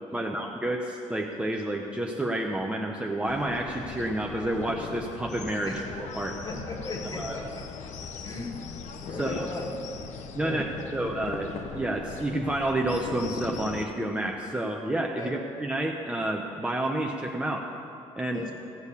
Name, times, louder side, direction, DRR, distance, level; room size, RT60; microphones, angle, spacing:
voice 1, 0.1-6.4 7.1-7.4 9.2-9.5 10.3-10.7 10.9-17.7 18.2-18.5, right 1 dB, 10° right, 0 dB, 0.8 m, -30 dB
sound 1, 3.3-13.9, left 5 dB, 70° left, 0.9 m, -39 dB
voice 2, 6.4-7.7 8.2-8.6 9.1-10.0 10.4-11.0 15.2-15.4 18.3-18.5, left 2 dB, 30° left, 1 dB, 2.1 m, -37 dB
16.0 x 6.4 x 8.4 m, 2.6 s
cardioid pair, 130°, 13 cm